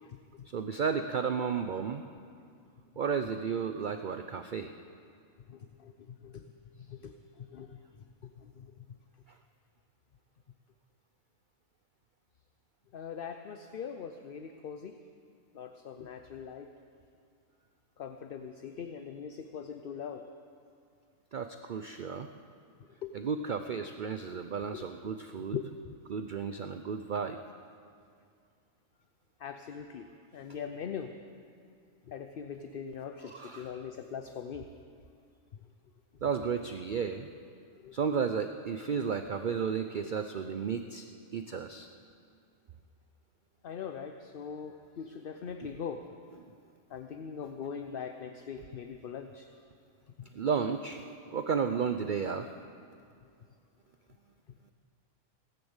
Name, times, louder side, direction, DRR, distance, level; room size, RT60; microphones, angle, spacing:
voice 1, 0.0-0.5 5.5-6.4 6.7-7.8 8.4-9.0 12.9-15.0 15.5-16.7 18.0-20.2 23.0-23.1 24.7-26.0 29.4-31.1 32.1-34.7 37.8-38.0 39.3-39.6 40.0-40.1 43.6-46.1 46.9-49.5 50.2-50.3, left 7 dB, 55° left, 7 dB, 0.7 m, -42 dB
voice 2, 0.5-2.0 3.0-4.7 21.3-22.3 23.1-25.6 26.1-27.4 33.3-33.7 36.2-37.3 37.9-41.0 41.3-41.9 50.3-51.0 51.3-52.5, right 6 dB, 55° right, 8 dB, 0.5 m, -33 dB
17.5 x 10.5 x 8.1 m, 2.3 s
omnidirectional pair, 1.4 m